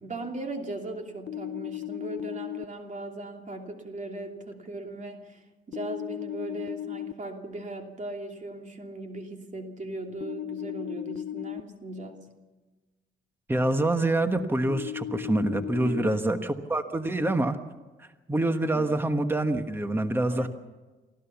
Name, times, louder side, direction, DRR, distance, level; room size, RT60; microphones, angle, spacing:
voice 1, 0.0-12.3 15.8-16.3 18.7-18.9 20.3-20.5, right 2 dB, 40° right, 3 dB, 2.8 m, -38 dB
sound 1, 1.3-2.6 5.7-7.1 10.2-11.6 14.7-16.1, left 11 dB, 60° left, 0.7 m, -35 dB
voice 2, 13.5-17.6 18.0-20.5, right 1 dB, 10° right, 8 dB, 1.3 m, -26 dB
24.5 x 15.0 x 7.1 m, 1.2 s
cardioid pair, 90°, 20 cm